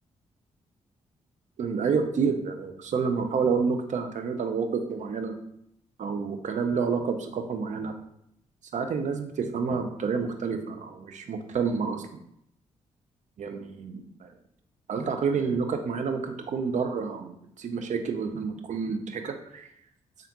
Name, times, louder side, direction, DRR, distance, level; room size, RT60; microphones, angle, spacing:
voice 1, 1.6-5.3 6.0-7.9 8.7-12.2 13.4-14.3 14.9-19.7, right 5 dB, 50° right, 6 dB, 0.5 m, -29 dB
3.4 x 2.3 x 2.9 m, 0.74 s
hypercardioid pair, 40°, 16 cm